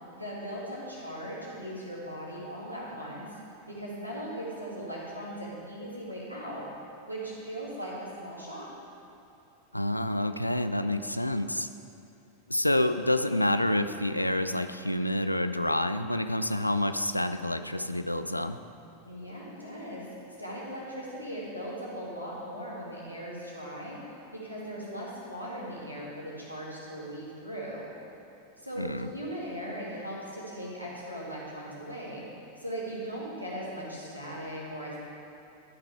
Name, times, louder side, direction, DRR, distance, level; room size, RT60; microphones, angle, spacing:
voice 1, 0.1-3.3 3.7-6.7 7.1-8.7 19.0-24.0 24.3-27.9 28.6-35.0, equal, 90° right, -6 dB, 2.1 m, -39 dB
voice 2, 9.7-11.7 12.5-18.6 28.8-29.1, left 1 dB, 85° left, 10 dB, 0.3 m, -28 dB
12.0 x 5.7 x 4.7 m, 2.6 s
figure-of-eight pair, 90°, 0 cm